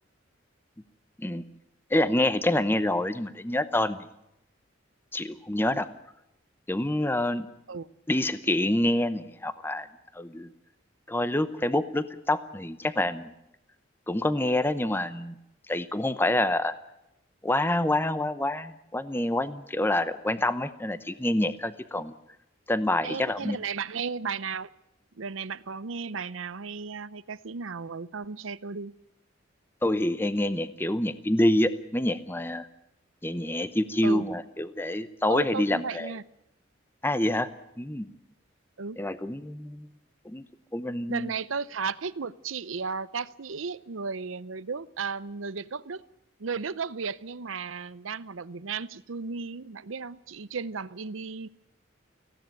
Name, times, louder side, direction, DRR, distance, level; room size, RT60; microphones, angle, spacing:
voice 1, 1.9-4.0 5.1-5.9 6.7-7.5 8.1-9.9 10.1-10.5 11.1-13.3 14.1-15.4 15.7-16.7 17.4-22.1 22.7-23.6 29.8-32.7 33.2-36.1 37.0-37.5 37.8-38.1 39.0-39.9 40.2-40.4 40.7-41.3, left 1 dB, 10° left, 13 dB, 0.8 m, -27 dB
voice 2, 23.0-24.7 25.2-28.9 34.0-34.3 35.3-36.2 38.8-39.0 41.1-46.0 46.4-51.5, right 5 dB, 80° right, 17 dB, 0.7 m, -34 dB
18.5 x 16.0 x 9.0 m, 0.85 s
head